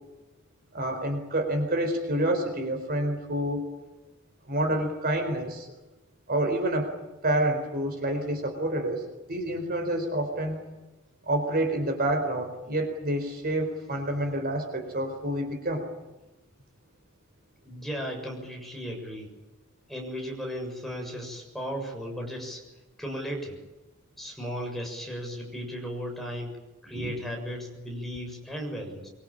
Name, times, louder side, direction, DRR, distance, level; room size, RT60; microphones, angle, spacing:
voice 1, 0.7-3.6 4.5-5.7 6.3-6.9 7.2-10.6 11.3-15.9 26.9-27.2, right 1 dB, 45° right, 5 dB, 4.2 m, -28 dB
voice 2, 17.6-19.3 19.9-22.6 23.0-23.6 24.2-26.5 26.8-29.1, equal, ahead, 0 dB, 7.0 m, -35 dB
24.5 x 24.0 x 8.9 m, 1.1 s
head